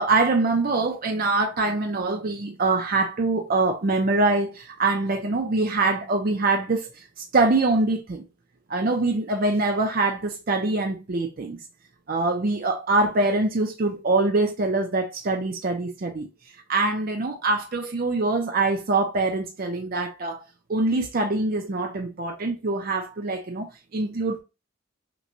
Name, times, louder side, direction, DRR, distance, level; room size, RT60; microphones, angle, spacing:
voice 1, 0.0-8.2 8.7-11.6 12.1-16.3 16.7-20.4 20.7-24.4, right 3 dB, 50° right, 0.6 m, -24 dB
6.0 x 2.3 x 2.6 m
head